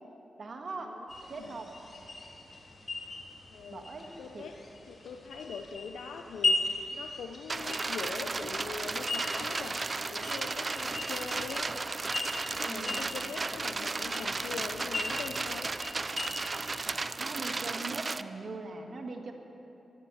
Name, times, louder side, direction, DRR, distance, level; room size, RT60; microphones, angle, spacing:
voice 1, 0.4-0.9 1.3-1.7 3.7-4.1 4.3-4.5 12.6-13.0 17.2-19.3, right 3 dB, 60° right, 3 dB, 1.8 m, -40 dB
sound 1, 1.1-17.0, left 2 dB, 45° left, 3.2 m, -38 dB
voice 2, 3.5-3.9 4.2-4.5 4.9-11.7 12.4-15.7, left 5 dB, 85° left, 4 dB, 0.6 m, -42 dB
sound 2, 7.5-18.2, right 3 dB, 45° right, 0.5 m, -34 dB
13.5 x 13.5 x 7.0 m, 3.0 s
supercardioid pair, 45°, 0 cm